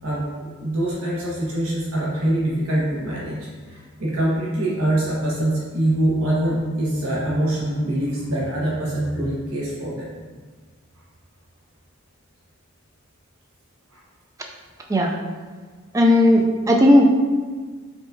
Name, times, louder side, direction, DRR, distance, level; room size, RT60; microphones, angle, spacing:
voice 1, 0.0-3.4 3.7-10.1 13.9-14.0 16.4-16.7, right 1 dB, 65° right, -6 dB, 1.1 m, -24 dB
voice 2, 15.9-17.1, left 1 dB, 15° right, 1 dB, 0.4 m, -15 dB
4.8 x 3.7 x 2.6 m, 1.5 s
head